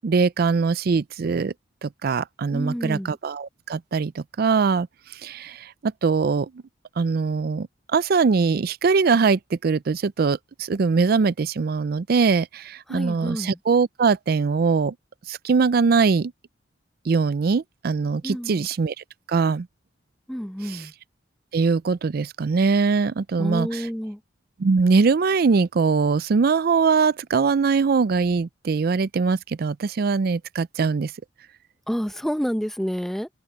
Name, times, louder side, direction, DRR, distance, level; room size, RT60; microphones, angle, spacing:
voice 1, 0.0-1.5 1.8-4.9 5.2-6.5 7.0-7.7 7.9-14.9 15.3-16.3 17.1-18.9 19.3-19.7 20.6-20.9 21.5-23.9 24.6-31.1, right 4 dB, 55° right, 0.4 m, -22 dB
voice 2, 2.5-3.2 12.9-13.6 18.2-18.7 20.3-20.9 23.4-24.2 31.9-33.3, equal, ahead, 0.8 m, -29 dB
head